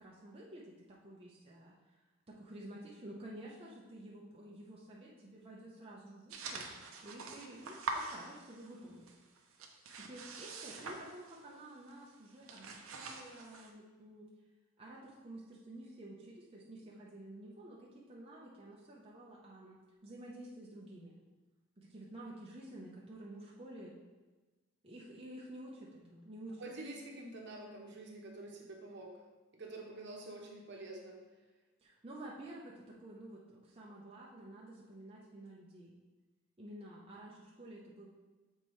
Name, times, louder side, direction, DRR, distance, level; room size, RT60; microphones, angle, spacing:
voice 1, 0.0-2.0 2.3-6.7 7.0-9.1 10.0-14.3 14.8-21.2 21.8-24.0 24.8-26.6 31.8-35.9 36.6-38.1, right 1 dB, 25° right, -5 dB, 0.6 m, -51 dB
sound 1, 6.3-8.8 9.1-11.6 11.9-12.1 12.3-13.7, right 3 dB, 80° right, 0.7 m, -45 dB
voice 2, 26.6-29.2 29.5-31.2, right 2 dB, 55° right, 0 dB, 1.0 m, -47 dB
7.1 x 4.4 x 3.1 m, 1.2 s
head